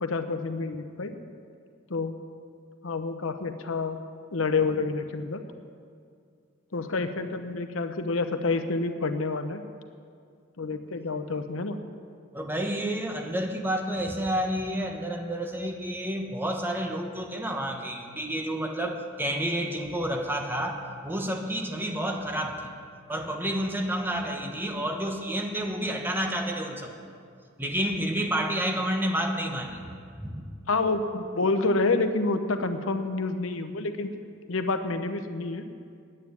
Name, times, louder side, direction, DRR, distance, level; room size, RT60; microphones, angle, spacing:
voice 1, 0.0-1.2 1.9-2.1 2.8-4.0 4.3-5.4 6.7-9.6 10.6-11.8 30.7-34.1 34.5-35.7, left 3 dB, 90° left, 8 dB, 0.9 m, -28 dB
voice 2, 12.3-22.7 23.1-26.9 27.6-29.8 30.2-30.4, right 1 dB, 10° right, 3 dB, 1.1 m, -30 dB
9.8 x 8.7 x 9.5 m, 2.2 s
head